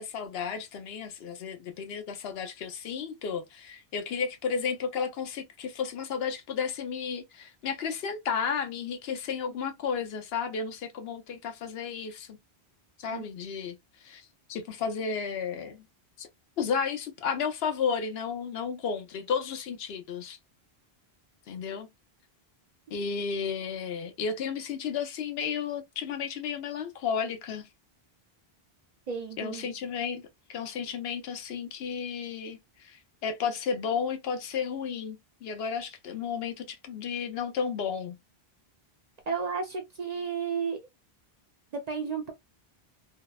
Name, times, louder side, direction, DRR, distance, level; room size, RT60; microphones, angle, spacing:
voice 1, 0.0-12.4 13.0-13.8 14.0-15.8 16.2-16.3 16.6-20.4 21.5-21.9 22.9-27.7 29.4-38.2, left 6 dB, 75° left, 0.8 m, -33 dB
voice 2, 29.1-29.7 39.3-40.8 41.7-42.3, right 6 dB, 55° right, 0.5 m, -32 dB
2.7 x 2.0 x 2.2 m
omnidirectional pair, 1.0 m